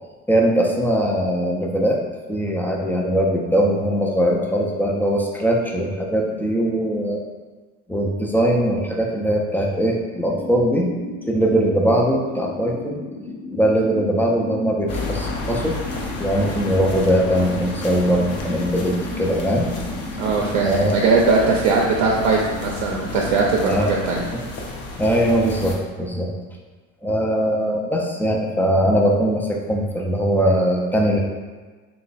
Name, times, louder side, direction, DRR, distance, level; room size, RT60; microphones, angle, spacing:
voice 1, 0.3-2.0 2.3-7.2 7.9-10.9 11.3-13.0 13.5-15.8 16.2-19.7 20.6-21.0 23.7-23.9 24.3-24.4 25.0-26.3 27.0-31.2, equal, 5° left, -1 dB, 0.4 m, -21 dB
sound 1, 10.2-24.3, left 2 dB, 80° left, 0.9 m, -35 dB
sound 2, 14.9-25.8, left 2 dB, 40° left, 0.7 m, -32 dB
voice 2, 20.2-24.2, right 4 dB, 75° right, -2 dB, 0.6 m, -20 dB
3.0 x 2.3 x 4.0 m, 1.4 s
supercardioid pair, 85°, 38 cm